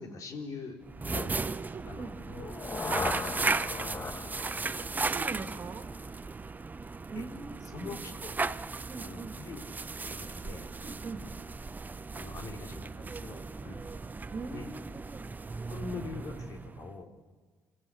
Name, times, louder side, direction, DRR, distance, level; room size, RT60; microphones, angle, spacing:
voice 1, 0.0-1.3 1.9-2.4 2.9-4.0 7.1-7.3 7.6-8.6 9.0-9.6 10.0-10.7 12.1-13.8 14.5-14.7 15.7-17.1, left 3 dB, 55° left, 3 dB, 3.5 m, -43 dB
sound 1, 0.8-17.0, right 4 dB, 25° right, 0.7 m, -36 dB
voice 2, 1.7-2.1 4.6-4.7 5.1-5.9 7.1-8.0 8.9-9.4 10.8-11.2 14.3-15.0, right 3 dB, 45° right, 7 dB, 2.4 m, -42 dB
sound 2, 2.3-6.2, left 3 dB, 30° left, 1.4 m, -38 dB
27.0 x 16.0 x 8.3 m, 1.4 s
hypercardioid pair, 55°, 7 cm